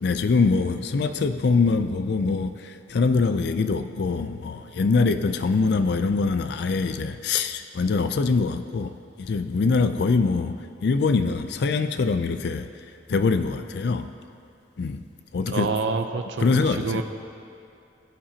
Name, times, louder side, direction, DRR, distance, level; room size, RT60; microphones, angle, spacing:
voice 1, 0.0-12.7 13.1-14.1 14.8-15.0 15.3-15.7 16.4-17.0, left 4 dB, 65° left, 9 dB, 0.4 m, -23 dB
voice 2, 15.4-17.0, right 4 dB, 90° right, 6 dB, 0.6 m, -28 dB
19.5 x 8.7 x 2.8 m, 2.4 s
head